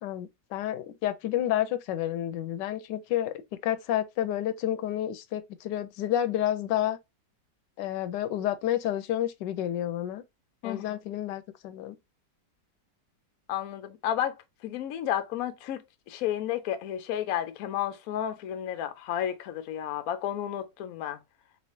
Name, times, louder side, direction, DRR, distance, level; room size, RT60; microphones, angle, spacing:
voice 1, 0.0-7.0 7.8-10.2 10.6-12.0, left 12 dB, 85° left, 1.2 m, -30 dB
voice 2, 10.6-11.0 13.5-21.2, left 11 dB, 70° left, 0.9 m, -32 dB
3.6 x 3.1 x 2.6 m
omnidirectional pair, 1.8 m